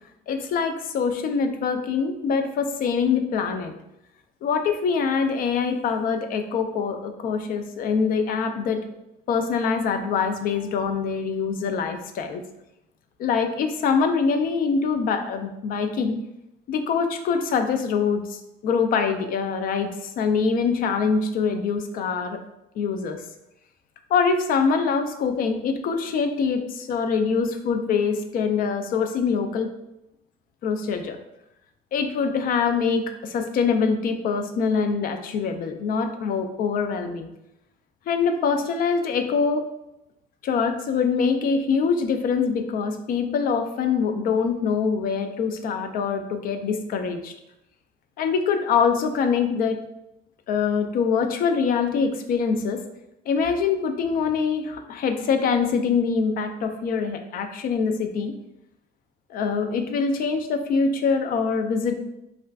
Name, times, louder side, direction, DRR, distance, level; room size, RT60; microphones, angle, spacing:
voice 1, 0.3-3.8 4.4-8.8 9.3-12.4 13.2-16.2 16.7-22.4 22.8-23.2 24.1-29.7 30.6-31.2 31.9-37.3 38.1-39.7 40.4-47.3 48.2-49.8 50.5-52.8 53.3-58.3 59.3-62.0, left 5 dB, 60° left, 6 dB, 0.4 m, -24 dB
2.4 x 2.2 x 3.3 m, 0.87 s
cardioid pair, 110°, 17 cm